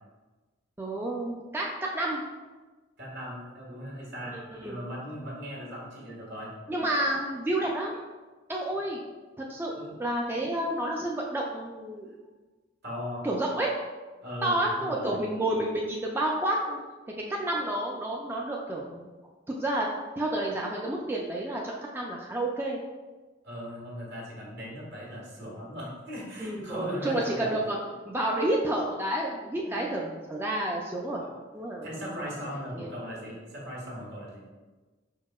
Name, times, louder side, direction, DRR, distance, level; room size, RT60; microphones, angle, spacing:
voice 1, 0.8-2.2 4.3-4.8 6.7-8.0 8.5-9.0 9.4-9.7 10.0-12.1 13.2-13.7 14.4-16.8 17.3-19.1 19.5-19.9 20.2-22.8 26.4-27.8 28.1-31.2 31.5-32.2 32.7-32.9, right 1 dB, 10° right, -2 dB, 0.3 m, -30 dB
voice 2, 3.0-4.4 4.6-6.5 9.7-10.0 12.8-13.2 14.2-15.2 23.4-27.5 29.6-30.2 31.2-31.4 31.8-34.4, equal, 60° right, -3 dB, 1.5 m, -39 dB
4.9 x 4.6 x 2.3 m, 1.3 s
head